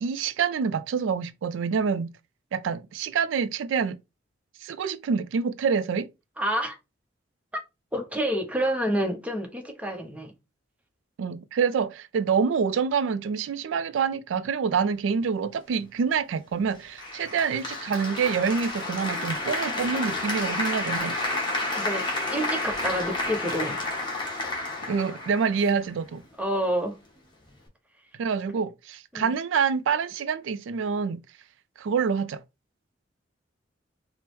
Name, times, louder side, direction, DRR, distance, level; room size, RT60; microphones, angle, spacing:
voice 1, 0.0-2.1 2.5-4.0 4.6-6.1 11.2-21.2 24.9-26.2 28.2-31.2 31.8-32.4, right 6 dB, 85° right, 0.3 m, -26 dB
voice 2, 6.4-6.8 7.5-7.6 7.9-10.3 21.7-22.0 22.3-24.0 26.4-26.9 29.1-29.3, equal, 10° right, 0.7 m, -28 dB
Applause, 17.0-26.0, left 2 dB, 25° left, 1.0 m, -30 dB
4.5 x 2.0 x 3.1 m
head